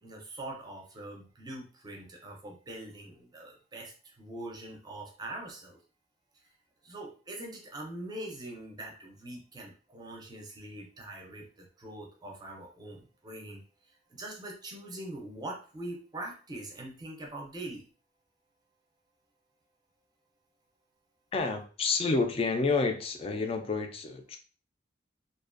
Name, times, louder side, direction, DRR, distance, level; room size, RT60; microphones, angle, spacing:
voice 1, 0.0-5.8 6.8-13.6 14.1-17.8, right 1 dB, 20° right, 0 dB, 0.5 m, -43 dB
voice 2, 21.3-24.4, left 4 dB, 30° left, 6 dB, 0.3 m, -29 dB
2.4 x 2.2 x 2.4 m, 0.39 s
head